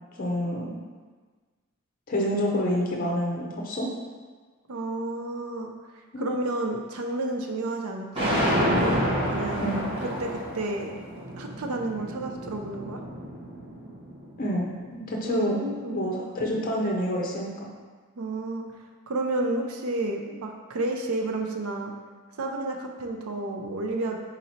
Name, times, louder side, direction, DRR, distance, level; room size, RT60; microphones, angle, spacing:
voice 1, 0.2-0.8 2.1-3.9 6.1-6.3 9.6-9.9 14.4-15.6 15.9-17.7, equal, 40° left, -2 dB, 0.6 m, -28 dB
voice 2, 4.7-5.7 6.2-8.6 9.3-9.7 10.2-10.9 11.4-13.0 15.2-16.0 18.2-18.7 19.1-21.9 22.4-24.2, right 2 dB, 75° right, 2 dB, 0.5 m, -31 dB
sound 1, 8.2-14.3, equal, 25° right, 0.9 m, -29 dB
3.9 x 2.9 x 4.2 m, 1.4 s
head